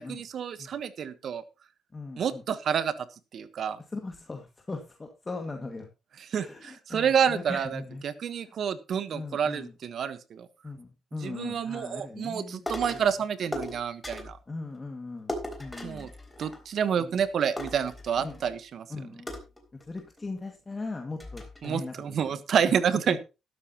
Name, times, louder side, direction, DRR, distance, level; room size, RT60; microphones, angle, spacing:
voice 1, 0.0-1.4 2.2-2.9 3.3-3.8 6.3-10.5 11.2-14.4 15.8-16.1 16.4-18.9 21.6-23.2, right 7 dB, 60° right, 13 dB, 1.3 m, -29 dB
voice 2, 1.9-2.4 3.9-5.9 6.4-8.0 8.4-8.5 9.1-9.7 10.6-13.0 14.5-15.3 15.6-16.1 17.0-17.1 18.2-18.4 18.9-19.3 19.9-22.3, left 3 dB, 25° left, 3 dB, 2.2 m, -39 dB
sound 1, 12.7-13.1 13.5-14.4 15.3-16.9 17.2-17.3 17.6-18.6 19.3-20.2 20.7-20.8 21.2-21.7, left 1 dB, 10° left, 3.8 m, -38 dB
12.5 x 12.5 x 3.0 m, 0.28 s
cardioid pair, 90°, 0 cm